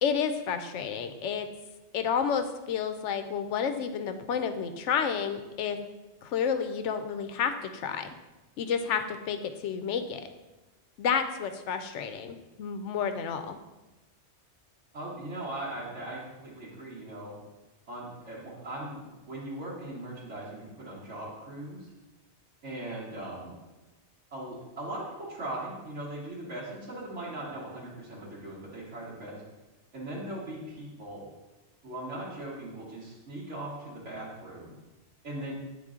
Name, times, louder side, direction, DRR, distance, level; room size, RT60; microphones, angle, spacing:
voice 1, 0.0-1.5 1.9-5.8 6.2-8.1 8.6-10.2 11.0-13.6, left 7 dB, 85° left, 8 dB, 0.9 m, -30 dB
voice 2, 14.9-17.3 17.9-21.9 22.6-23.5 24.3-29.4 29.9-31.2 31.8-34.7 35.2-35.5, right 1 dB, 85° right, -8 dB, 1.6 m, -39 dB
9.1 x 3.7 x 3.7 m, 1.1 s
omnidirectional pair, 1.2 m